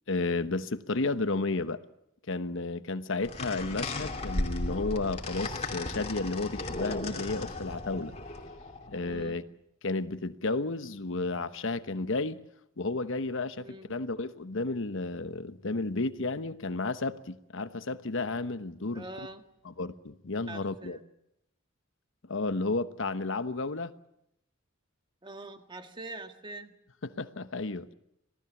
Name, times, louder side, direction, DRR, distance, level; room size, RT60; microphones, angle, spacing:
voice 1, 0.1-1.8 2.3-8.1 8.9-9.4 9.8-12.4 12.8-19.0 19.8-21.0 22.3-23.9 27.0-27.9, left 3 dB, 70° left, 1.0 m, -32 dB
sound 1, 3.2-9.3, left 2 dB, 35° left, 2.9 m, -36 dB
voice 2, 9.0-9.4 13.6-14.0 18.9-19.4 20.5-21.0 25.2-26.8, right 2 dB, 25° right, 1.8 m, -44 dB
26.5 x 18.5 x 7.2 m
head